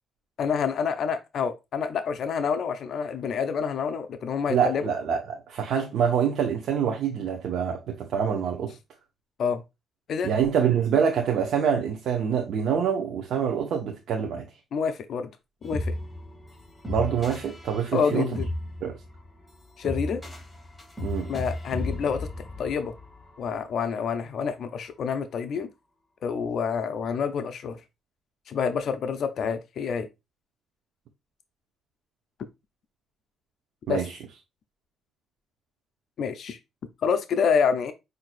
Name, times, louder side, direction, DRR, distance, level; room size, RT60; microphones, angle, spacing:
voice 1, 0.4-4.8 9.4-9.6 10.1-10.3 14.7-15.3 15.6-15.9 17.9-18.5 19.8-20.2 21.3-22.3 22.6-22.9 23.4-25.7 26.2-27.8 28.5-30.1 33.9-34.0 36.2-36.6 37.0-37.9, left 6 dB, 65° left, 0.4 m, -27 dB
voice 2, 4.5-8.7 10.2-14.5 16.9-18.3 18.8-19.0 21.0-21.3 33.9-34.2, right 7 dB, 75° right, 0.6 m, -26 dB
sound 1, 15.6-23.8, left 1 dB, 15° left, 2.2 m, -35 dB
5.8 x 2.6 x 2.5 m
cardioid pair, 90°, 0 cm